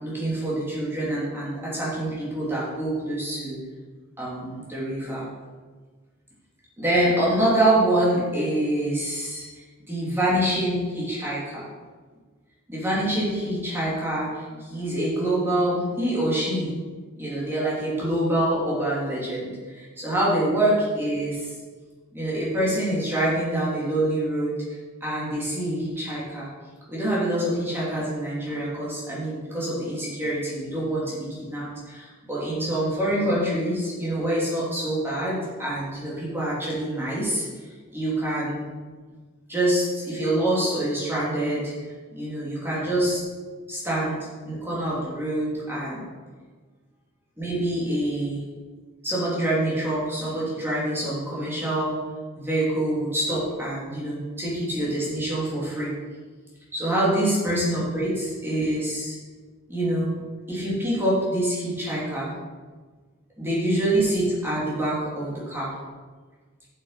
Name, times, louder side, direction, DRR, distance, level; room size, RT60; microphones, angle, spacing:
voice 1, 0.0-3.6 4.2-5.3 6.8-9.6 9.9-11.7 12.7-16.7 17.2-21.5 22.1-24.5 25.0-26.5 26.9-37.5 37.9-38.7 39.5-41.7 42.1-43.2 43.7-44.2 44.4-46.1 47.4-48.4 49.0-52.0 52.4-55.9 56.7-59.2 59.7-60.2 60.5-62.3 63.4-65.7, right 1 dB, 10° right, -8 dB, 2.9 m, -26 dB
8.2 x 7.4 x 5.1 m, 1.4 s
head